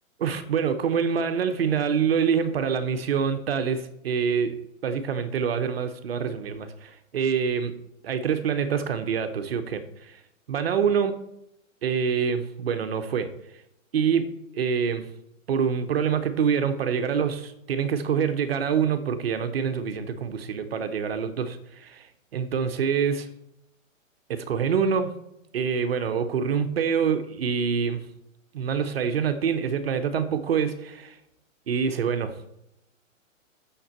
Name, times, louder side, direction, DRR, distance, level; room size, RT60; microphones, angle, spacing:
voice 1, 0.2-4.6 4.8-7.8 8.0-10.2 10.5-11.1 11.8-13.3 13.9-15.1 15.5-22.1 22.3-23.3 24.3-25.2 25.5-28.0 28.5-31.2 31.7-32.3, right 7 dB, 50° right, 9 dB, 0.8 m, -26 dB
6.7 x 5.6 x 7.4 m, 0.83 s
hypercardioid pair, 175°, 40 cm